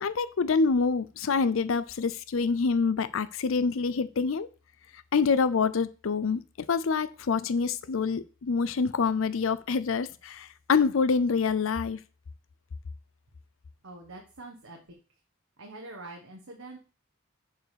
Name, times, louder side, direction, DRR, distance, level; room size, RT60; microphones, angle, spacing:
voice 1, 0.0-4.5 5.1-6.4 6.7-12.0, left 5 dB, 75° left, 0.5 m, -26 dB
voice 2, 13.8-14.8 15.6-16.8, right 2 dB, 80° right, 1.5 m, -44 dB
6.8 x 4.8 x 6.7 m
head